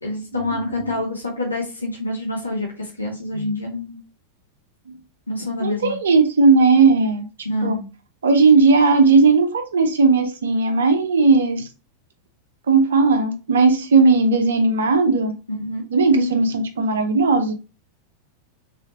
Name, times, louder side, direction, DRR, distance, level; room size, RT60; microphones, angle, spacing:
voice 1, 0.0-4.0 5.3-6.0 7.4-7.9 15.6-16.4, left 2 dB, 80° left, 0.9 m, -27 dB
voice 2, 5.6-7.3 7.6-7.8 8.2-11.7 12.7-15.3 15.9-17.5, right 4 dB, 65° right, 0.6 m, -17 dB
3.4 x 2.8 x 2.9 m
figure-of-eight pair, 90°, 0 cm